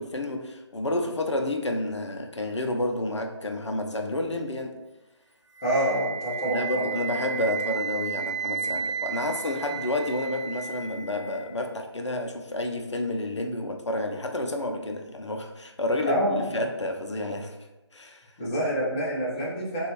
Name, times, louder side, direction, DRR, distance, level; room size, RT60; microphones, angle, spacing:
voice 1, 0.0-4.7 6.5-17.6 17.9-18.3, left 1 dB, 75° left, 3 dB, 0.5 m, -30 dB
Wind instrument woodwind instrument, 5.5-11.5, right 7 dB, 85° right, 0.7 m, -33 dB
voice 2, 5.6-6.9 16.0-16.5 18.4-19.9, equal, 15° left, -7 dB, 0.5 m, -27 dB
3.7 x 2.3 x 3.0 m, 1.0 s
figure-of-eight pair, 150°, 15 cm